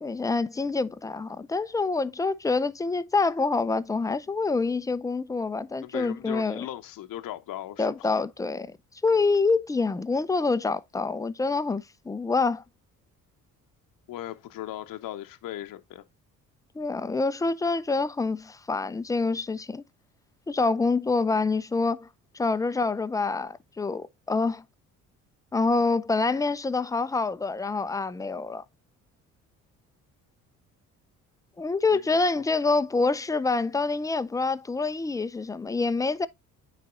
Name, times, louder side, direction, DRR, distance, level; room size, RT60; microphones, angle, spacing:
voice 1, 0.0-6.7 7.8-8.8 9.0-12.6 16.8-19.8 20.5-22.1 22.3-24.6 25.5-28.6 31.6-36.3, left 3 dB, 10° left, 0.4 m, -26 dB
voice 2, 5.8-8.2 14.1-16.0 31.9-32.4, left 13 dB, 50° left, 0.8 m, -38 dB
9.3 x 4.2 x 2.5 m
hypercardioid pair, 50°, 42 cm